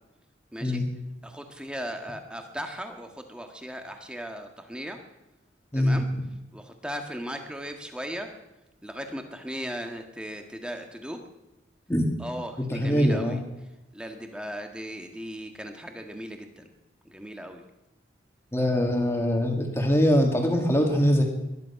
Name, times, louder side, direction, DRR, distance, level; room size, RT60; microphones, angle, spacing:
voice 1, 0.5-0.8 1.2-5.0 5.8-6.1 6.5-8.3 8.8-11.2 12.2-13.4 13.9-16.7 17.1-17.6, equal, 5° right, 4 dB, 1.6 m, -37 dB
voice 2, 12.6-13.4 18.5-21.2, equal, 15° left, 2 dB, 2.3 m, -23 dB
22.0 x 11.0 x 5.9 m, 0.99 s
head